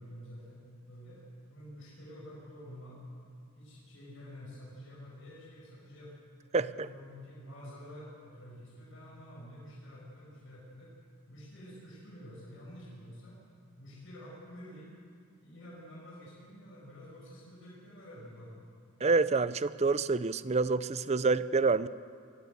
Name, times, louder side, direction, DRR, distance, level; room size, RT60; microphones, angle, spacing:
voice 1, 0.0-3.0 3.5-6.1 6.6-10.9 11.3-13.4 13.8-14.9 15.4-18.6, equal, 60° left, -6 dB, 8.0 m, -49 dB
voice 2, 6.5-6.9 19.0-21.9, right 4 dB, 30° right, 16 dB, 0.5 m, -27 dB
23.5 x 16.5 x 8.1 m, 2.2 s
head